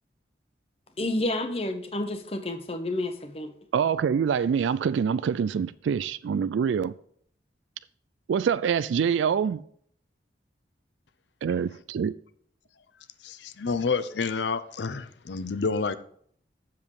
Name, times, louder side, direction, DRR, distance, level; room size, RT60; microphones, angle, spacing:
voice 1, 1.0-3.5, left 1 dB, 30° left, 0.9 m, -30 dB
voice 2, 3.7-6.9 8.3-9.6 11.4-12.1, right 7 dB, 90° right, 0.3 m, -25 dB
voice 3, 13.2-16.0, left 4 dB, 75° left, 0.6 m, -29 dB
7.5 x 7.1 x 4.7 m
head